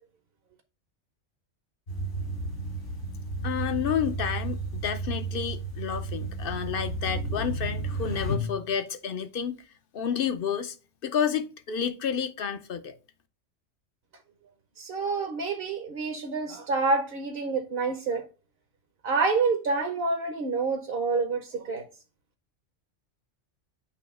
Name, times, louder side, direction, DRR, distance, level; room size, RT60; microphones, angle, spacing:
sound 1, 1.9-8.3, right 3 dB, 70° left, 2.8 m, -33 dB
voice 1, 3.4-9.6 9.9-10.8 11.0-12.9, left 7 dB, 55° left, 0.8 m, -30 dB
voice 2, 14.8-18.2 19.0-21.8, right 4 dB, 55° right, 1.0 m, -27 dB
8.4 x 2.8 x 5.3 m
omnidirectional pair, 1.3 m